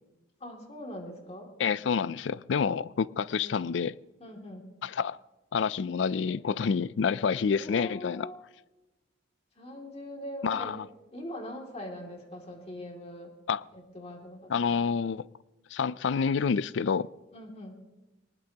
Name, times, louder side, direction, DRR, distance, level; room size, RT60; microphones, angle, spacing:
voice 1, 0.4-1.5 3.3-3.6 4.2-4.7 7.6-8.4 9.6-10.7 11.1-13.3 13.7-14.6 17.3-17.7, left 1 dB, 35° left, 2.5 m, -42 dB
voice 2, 1.6-4.0 4.8-5.2 5.5-8.3 10.4-10.9 13.5-13.6 14.5-15.3 15.7-17.1, left 6 dB, 70° left, 0.4 m, -28 dB
20.5 x 19.5 x 2.9 m
head